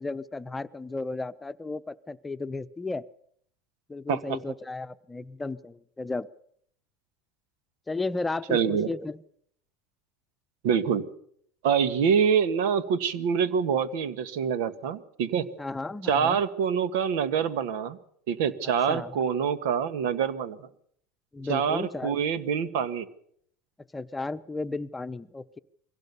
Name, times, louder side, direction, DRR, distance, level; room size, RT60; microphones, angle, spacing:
voice 1, 0.0-3.0 3.9-6.3 7.9-9.2 15.6-16.4 18.9-19.1 21.3-22.2 23.9-25.6, left 3 dB, 15° left, 12 dB, 0.9 m, -34 dB
voice 2, 8.5-8.9 10.6-11.1 11.6-15.5 16.0-18.0 18.3-20.6 21.5-23.1, right 7 dB, 80° right, 13 dB, 1.6 m, -25 dB
23.0 x 16.5 x 7.0 m, 0.66 s
supercardioid pair, 110°, 0 cm